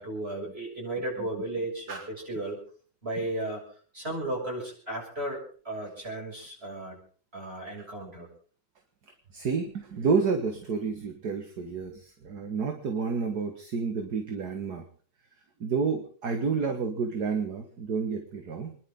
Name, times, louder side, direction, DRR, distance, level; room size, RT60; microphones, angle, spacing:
voice 1, 0.0-2.6 3.0-3.6 3.9-5.4 5.6-7.0 7.3-8.3, right 1 dB, 30° right, -2 dB, 7.3 m, -34 dB
voice 2, 9.3-14.8 15.6-18.8, right 5 dB, 55° right, 4 dB, 2.1 m, -30 dB
28.0 x 11.0 x 3.8 m, 0.43 s
omnidirectional pair, 2.0 m